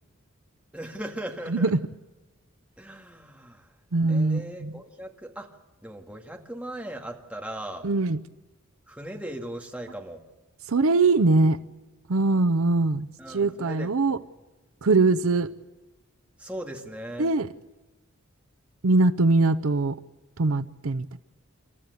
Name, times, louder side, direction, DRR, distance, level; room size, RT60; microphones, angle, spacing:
voice 1, 0.7-1.7 2.8-3.7 4.1-5.5 5.8-7.9 8.9-10.2 13.2-14.2 16.4-17.3, right 1 dB, 5° right, 2.1 m, -38 dB
voice 2, 3.9-4.7 7.8-8.2 10.7-11.6 12.1-13.1 13.3-14.2 14.8-15.5 17.2-17.5 18.8-19.9 20.4-21.1, right 3 dB, 75° right, 0.7 m, -22 dB
28.0 x 13.5 x 8.3 m
head